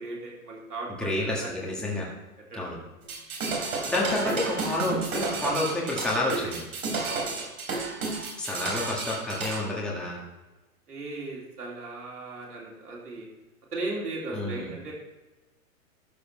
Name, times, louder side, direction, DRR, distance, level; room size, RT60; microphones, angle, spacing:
voice 1, 0.0-1.8 2.5-2.8 3.8-4.3 7.1-7.4 10.9-13.3 13.7-14.9, right 2 dB, 85° right, -3 dB, 3.3 m, -37 dB
voice 2, 1.0-2.1 2.5-2.8 3.8-6.6 8.4-10.2 14.3-14.7, left 2 dB, ahead, -4 dB, 1.7 m, -29 dB
sound 1, 3.0-9.6, right 3 dB, 65° right, 3.8 m, -31 dB
12.5 x 5.1 x 5.4 m, 1.1 s
hypercardioid pair, 130°, 45 cm